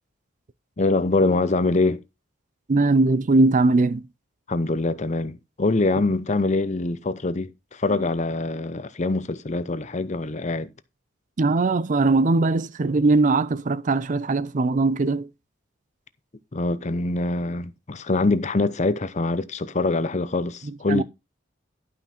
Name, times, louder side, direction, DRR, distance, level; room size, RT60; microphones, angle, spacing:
voice 1, 0.8-2.0 4.5-10.7 16.5-21.0, left 2 dB, 35° left, 0.7 m, -24 dB
voice 2, 2.7-4.1 11.4-15.3 20.6-21.0, right 3 dB, 40° right, 0.5 m, -20 dB
11.5 x 5.8 x 4.4 m
head